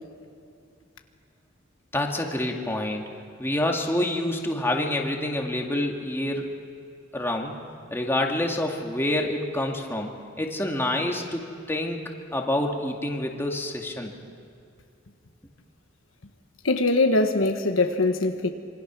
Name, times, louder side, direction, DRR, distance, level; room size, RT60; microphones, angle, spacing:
voice 1, 1.9-3.0 3.4-6.6 7.1-7.5 7.9-10.1 10.4-12.0 12.3-14.1, left 1 dB, 10° left, 2.2 m, -27 dB
voice 2, 16.6-18.5, left 2 dB, 80° left, 1.5 m, -22 dB
26.5 x 24.5 x 6.2 m
head